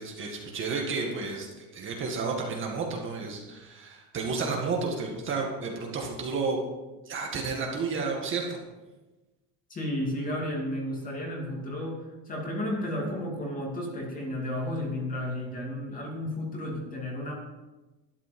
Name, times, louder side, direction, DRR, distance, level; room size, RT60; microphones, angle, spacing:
voice 1, 0.0-6.6 7.1-8.5, right 4 dB, 30° right, 0 dB, 1.9 m, -31 dB
voice 2, 9.7-17.3, left 1 dB, 20° left, -1 dB, 2.6 m, -33 dB
12.5 x 10.5 x 5.3 m, 1.1 s
cardioid pair, 170°, 40 cm